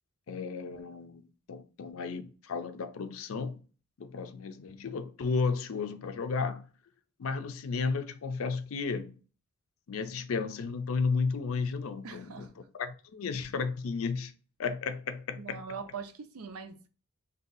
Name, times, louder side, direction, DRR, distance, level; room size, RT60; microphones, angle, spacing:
voice 1, 0.3-3.6 4.0-6.7 7.2-9.2 9.9-12.5 12.8-14.3 14.6-15.6, left 4 dB, 70° left, 0.4 m, -33 dB
voice 2, 12.0-12.5 15.4-16.9, right 5 dB, 90° right, 0.5 m, -42 dB
2.6 x 2.3 x 3.8 m
head